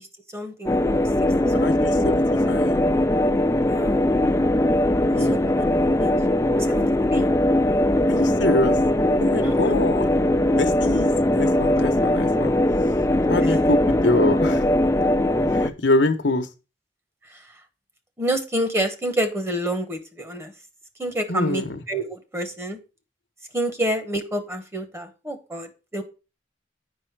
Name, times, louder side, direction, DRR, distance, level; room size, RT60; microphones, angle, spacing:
voice 1, 0.3-1.1 1.6-1.8 3.7-4.1 5.2-5.6 6.0-6.1 6.5-7.3 9.4-9.7 10.9-11.0 17.3-17.4 18.2-20.5 21.0-22.8 23.5-26.0, right 1 dB, 15° right, 8 dB, 1.1 m, -28 dB
sound 1, 0.7-15.7, left 1 dB, 15° left, 0.5 m, -20 dB
voice 2, 1.5-2.8 5.1-5.4 8.1-8.8 9.2-10.1 10.6-12.5 13.3-14.6 15.5-16.5 21.3-21.8, left 2 dB, 90° left, 6 dB, 1.0 m, -25 dB
8.3 x 5.5 x 4.6 m, 0.31 s
head